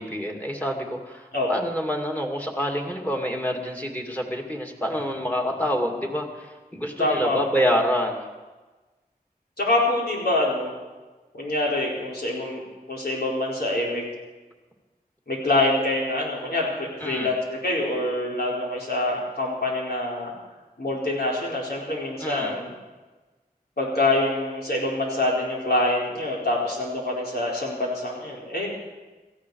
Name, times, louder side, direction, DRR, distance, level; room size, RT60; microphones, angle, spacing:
voice 1, 0.0-8.3 17.0-17.3 22.2-22.6, equal, 10° left, 2 dB, 2.6 m, -27 dB
voice 2, 7.0-7.4 9.6-10.7 11.3-12.6 12.9-14.0 15.3-20.3 20.8-22.7 23.8-28.7, left 2 dB, 80° left, -4 dB, 4.4 m, -25 dB
18.0 x 14.5 x 4.9 m, 1.2 s
wide cardioid pair, 45°, 16 cm